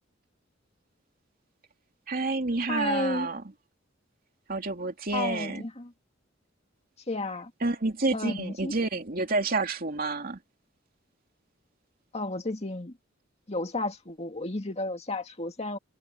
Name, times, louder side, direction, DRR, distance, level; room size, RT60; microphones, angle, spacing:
voice 1, 2.1-3.5 4.5-5.6 7.6-10.4, right 3 dB, 50° right, 2.7 m, -29 dB
voice 2, 2.7-3.3 5.1-5.9 7.1-7.5 8.1-8.7 12.1-12.9 13.5-15.8, left 2 dB, 35° left, 2.1 m, -32 dB
head